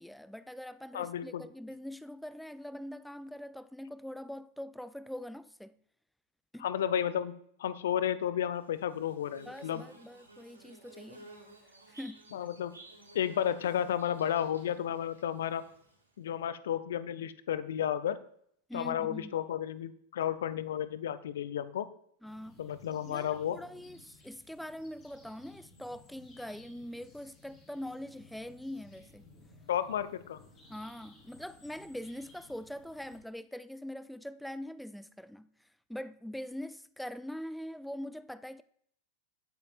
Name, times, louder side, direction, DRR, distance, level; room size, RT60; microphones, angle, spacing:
voice 1, 0.0-5.8 6.5-6.7 9.5-11.3 11.9-12.3 18.7-19.4 22.2-22.6 23.1-29.3 30.7-38.6, left 1 dB, ahead, 0.4 m, -43 dB
voice 2, 0.9-1.4 6.6-7.3 7.6-9.8 12.3-12.7 13.1-15.6 16.2-18.2 18.7-21.9 22.6-23.6 29.7-30.4, left 10 dB, 60° left, 0.6 m, -32 dB
Bird / Buzz, 8.5-16.2, right 2 dB, 80° right, 2.3 m, -55 dB
sound 1, 22.2-33.2, left 2 dB, 25° left, 4.4 m, -58 dB
19.0 x 8.6 x 2.4 m
figure-of-eight pair, 90°, 0 cm